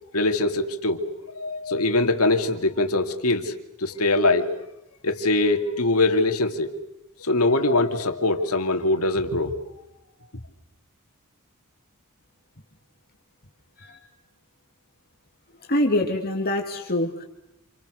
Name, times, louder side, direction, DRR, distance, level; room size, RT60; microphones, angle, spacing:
voice 1, 0.1-1.1 1.4-3.5 3.8-4.5 5.0-6.7 7.2-9.6, left 2 dB, 80° left, 6 dB, 2.6 m, -22 dB
voice 2, 15.7-17.3, left 1 dB, 45° left, 1 dB, 2.8 m, -24 dB
29.0 x 28.0 x 6.5 m, 0.86 s
head